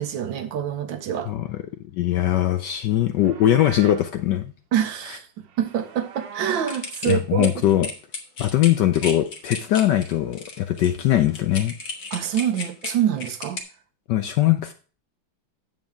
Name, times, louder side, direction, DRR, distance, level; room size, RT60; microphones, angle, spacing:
voice 1, 0.0-1.3 4.7-7.5 12.1-13.6, right 9 dB, 70° right, 1.4 m, -26 dB
voice 2, 1.3-1.6 1.9-4.5 7.1-7.9 8.4-11.7 14.1-14.7, left 12 dB, 75° left, 1.0 m, -21 dB
Livestock farm animals working animals, 3.0-4.1 5.4-7.0, right 8 dB, 90° right, 1.7 m, -41 dB
sound 1, 6.7-13.6, left 3 dB, 50° left, 1.7 m, -34 dB
8.9 x 7.4 x 3.5 m
omnidirectional pair, 2.3 m